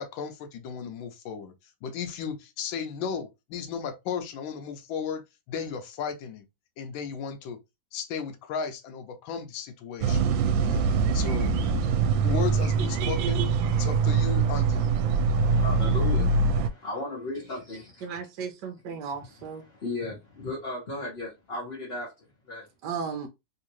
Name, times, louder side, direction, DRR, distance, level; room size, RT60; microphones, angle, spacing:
voice 1, 0.0-1.5 1.8-6.4 6.8-7.6 7.9-10.2 10.6-10.9 11.1-11.5 12.2-13.5 13.7-14.9, left 6 dB, 90° left, 1.4 m, -35 dB
sound 1, 10.0-16.7, right 5 dB, 90° right, 1.3 m, -23 dB
voice 2, 15.4-18.1 19.1-22.7, left 2 dB, 35° left, 1.3 m, -36 dB
voice 3, 18.0-19.6 22.8-23.3, right 6 dB, 70° right, 1.2 m, -35 dB
3.6 x 2.8 x 2.9 m
omnidirectional pair, 2.1 m